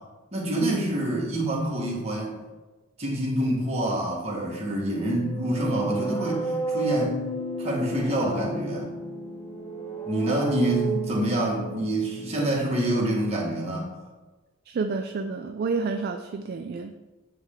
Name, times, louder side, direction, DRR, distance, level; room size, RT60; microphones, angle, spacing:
voice 1, 0.3-2.4 3.0-7.2 7.6-8.9 10.1-13.9, right 1 dB, 35° right, -3 dB, 1.6 m, -26 dB
sound 1, 5.1-12.9, right 3 dB, 10° left, 0.6 m, -32 dB
voice 2, 14.7-17.0, right 4 dB, 50° right, 6 dB, 0.3 m, -29 dB
9.2 x 3.3 x 3.7 m, 1.2 s
head